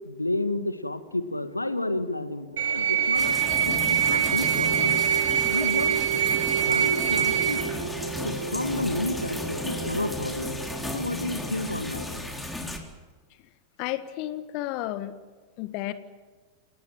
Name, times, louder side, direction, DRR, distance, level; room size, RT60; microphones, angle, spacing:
voice 1, 0.0-5.0 5.5-6.2 6.6-7.6 8.2-10.6 10.9-12.1, left 2 dB, 85° left, 12 dB, 1.8 m, -31 dB
sound 1, 2.2-12.4, right 5 dB, 75° right, 4.6 m, -36 dB
sound 2, 2.6-7.6, right 11 dB, 60° right, 1.9 m, -24 dB
sound 3, 3.1-12.8, left 1 dB, 5° left, 3.9 m, -34 dB
voice 2, 13.8-15.2 15.6-15.9, left 15 dB, 45° left, 13 dB, 1.5 m, -32 dB
29.0 x 18.5 x 7.6 m, 1.4 s
figure-of-eight pair, 90°, 0 cm